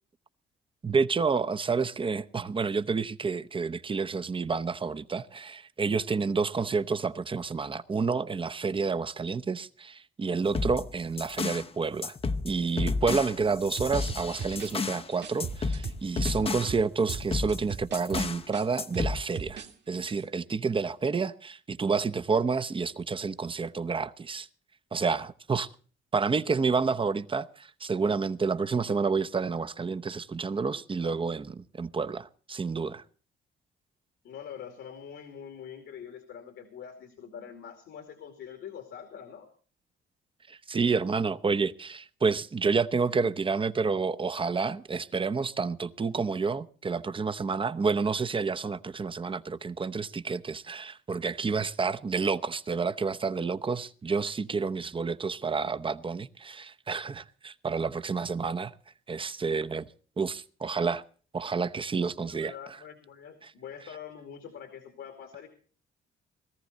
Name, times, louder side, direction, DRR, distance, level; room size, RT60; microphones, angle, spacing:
voice 1, 0.8-12.1 12.4-24.5 24.9-25.7 26.1-33.0 40.5-58.7 59.1-59.9 60.2-61.0 61.3-62.5, right 5 dB, 25° right, 0.8 m, -29 dB
sound 1, 10.5-11.7 12.0-15.1 15.4-16.8 17.1-18.4 18.8-19.2, left 4 dB, 30° left, 0.8 m, -32 dB
sound 2, 13.8-16.4 16.7-19.7 20.0-20.2, right 5 dB, 60° right, 2.0 m, -38 dB
voice 2, 34.2-39.5 62.1-65.5, left 8 dB, 80° left, 2.4 m, -44 dB
18.0 x 14.0 x 4.1 m
cardioid pair, 90°, 20 cm